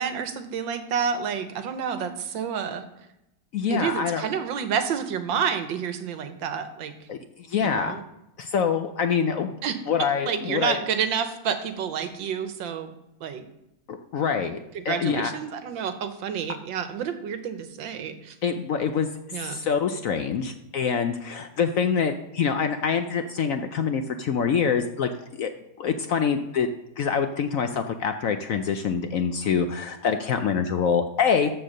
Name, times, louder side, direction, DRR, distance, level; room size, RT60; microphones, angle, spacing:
voice 1, 0.0-2.8 3.7-6.9 7.6-8.0 9.6-9.8 10.3-12.9 13.2-13.4 14.7-18.3 19.3-19.6, right 7 dB, 90° right, 8 dB, 1.7 m, -29 dB
voice 2, 3.5-4.3 7.1-7.2 7.5-7.9 8.4-9.5 9.9-10.8 13.9-15.3 18.4-19.1 19.4-25.1 25.4-26.7 27.0-31.5, left 6 dB, 65° left, 7 dB, 0.8 m, -25 dB
13.5 x 4.6 x 6.5 m, 0.86 s
omnidirectional pair, 2.0 m